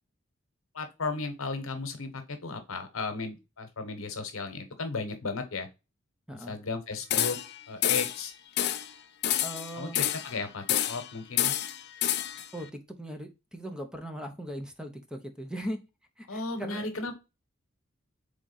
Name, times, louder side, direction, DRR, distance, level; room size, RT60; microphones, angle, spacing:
voice 1, 0.7-5.7 6.3-7.4 7.7-8.3 9.8-11.5 16.3-17.2, left 3 dB, 80° left, 8 dB, 1.0 m, -35 dB
sound 1, 7.1-7.5 7.8-8.2 8.6-8.9 9.2-10.3 10.7-11.1 11.4-12.5, left 11 dB, 55° left, 0.5 m, -28 dB
voice 2, 9.4-10.0 12.5-15.8 16.2-16.9, equal, 5° right, 6 dB, 0.6 m, -39 dB
3.7 x 3.6 x 3.9 m, 0.27 s
head